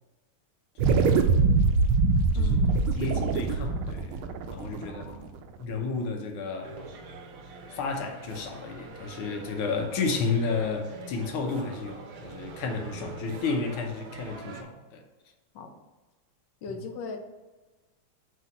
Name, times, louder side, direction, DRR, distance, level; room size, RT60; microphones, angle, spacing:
sound 1, 0.8-5.5, right 4 dB, 80° right, 1.4 m, -23 dB
voice 1, 2.3-2.9 4.6-5.3 15.5-15.8 16.6-17.2, left 4 dB, 65° left, 5 dB, 1.3 m, -40 dB
voice 2, 3.0-5.1 5.6-6.8 7.7-15.0, left 4 dB, 85° left, 3 dB, 1.7 m, -32 dB
sound 2, 6.6-14.6, right 3 dB, 60° right, 1.2 m, -44 dB
8.0 x 2.9 x 5.8 m, 1.2 s
omnidirectional pair, 2.3 m